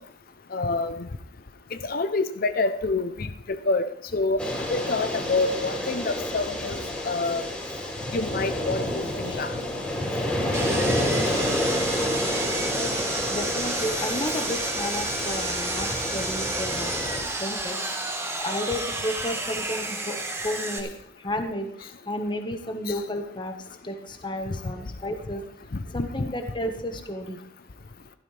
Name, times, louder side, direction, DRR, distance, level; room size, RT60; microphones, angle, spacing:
voice 1, 0.5-1.1 1.7-7.5 8.1-9.6 22.9-23.0 24.5-24.6 25.7-26.1, left 3 dB, 50° left, 10 dB, 0.7 m, -27 dB
sound 1, 4.4-17.2, left 1 dB, 5° left, 3.4 m, -29 dB
Sawing, 10.5-20.8, right 2 dB, 15° right, 1.4 m, -31 dB
voice 2, 13.3-16.9 17.4-17.8 18.4-20.9 21.2-23.5 23.8-25.4 25.9-27.4, left 1 dB, 25° left, 5 dB, 1.4 m, -32 dB
15.5 x 13.0 x 3.4 m, 0.71 s
head